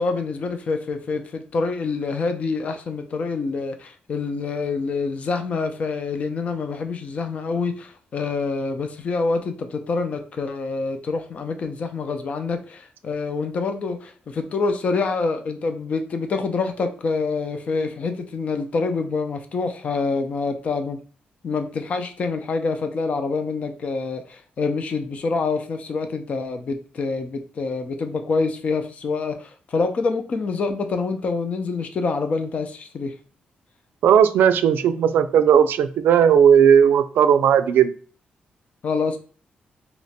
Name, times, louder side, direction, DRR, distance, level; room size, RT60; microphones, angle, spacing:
voice 1, 0.0-21.0 21.4-33.1 38.8-39.2, left 4 dB, 40° left, 7 dB, 0.4 m, -26 dB
voice 2, 34.0-37.9, right 8 dB, 85° right, 10 dB, 0.3 m, -16 dB
2.8 x 2.1 x 4.1 m, 0.41 s
wide cardioid pair, 170°, 3 cm